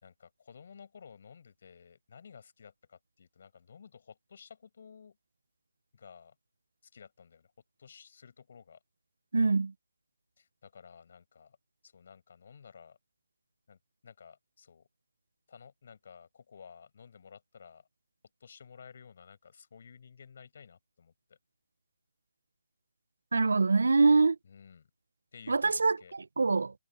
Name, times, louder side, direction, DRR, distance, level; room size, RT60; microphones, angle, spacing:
voice 1, 0.0-5.2 5.9-6.3 6.9-7.5 7.8-8.8 10.4-11.6 11.8-13.0 13.7-14.9 15.5-17.8 18.4-21.4 24.4-24.9 25.3-26.1, left 6 dB, 55° left, 6.3 m, -54 dB
voice 2, 9.3-9.7 23.3-24.4 25.5-26.7, right 4 dB, 75° right, 0.8 m, -24 dB
figure-of-eight pair, 155°, 0 cm